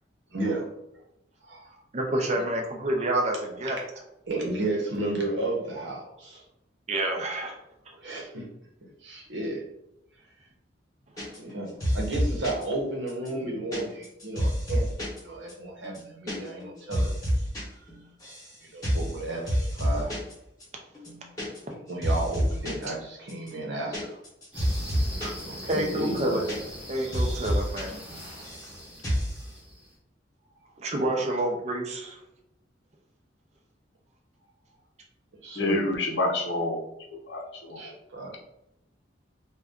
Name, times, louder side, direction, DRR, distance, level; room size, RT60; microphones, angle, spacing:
voice 1, 0.3-0.7 1.4-1.7 2.2-2.3 4.3-6.4 8.0-8.5 9.0-9.6 11.4-14.9 15.2-17.1 18.6-20.1 21.9-24.2 25.4-26.4 31.2-31.3 35.4-35.8 37.8-38.4, right 2 dB, 80° right, -1 dB, 0.9 m, -33 dB
voice 2, 1.9-3.8 6.9-7.6 25.2-26.4 26.9-28.0 30.8-32.2, right 1 dB, 35° right, 2 dB, 0.5 m, -28 dB
sound 1, 11.2-11.5 11.8-12.6 13.1-15.2 15.5-15.6 15.8-16.3 16.6-17.6 17.9-18.5 18.8-19.1 19.5-20.3 20.6-20.7 20.9-21.8 22.0-22.8 23.3-25.4 25.7-25.8 26.0-26.9 27.1-27.8 28.1-28.7 29.0-29.4, equal, 20° left, 1.0 m, -28 dB
sound 2, 24.5-29.9, equal, 5° right, 0.9 m, -42 dB
voice 3, 35.6-36.8 37.1-38.0, left 2 dB, 70° left, 1 dB, 0.6 m, -28 dB
2.6 x 2.2 x 3.5 m, 0.86 s
head